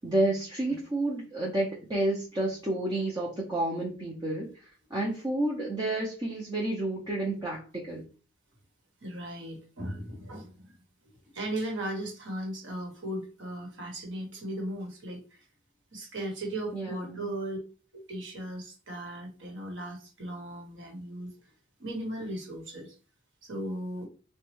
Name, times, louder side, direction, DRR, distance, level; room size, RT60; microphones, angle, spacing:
voice 1, 0.0-4.5 4.9-8.0 16.7-17.3, right 1 dB, 20° right, -4 dB, 0.5 m, -30 dB
voice 2, 9.0-10.8 11.3-15.4 15.9-17.6 17.9-21.3 21.8-22.9 23.4-24.1, right 1 dB, 70° right, 0 dB, 1.1 m, -37 dB
3.0 x 2.2 x 3.1 m, 0.36 s
head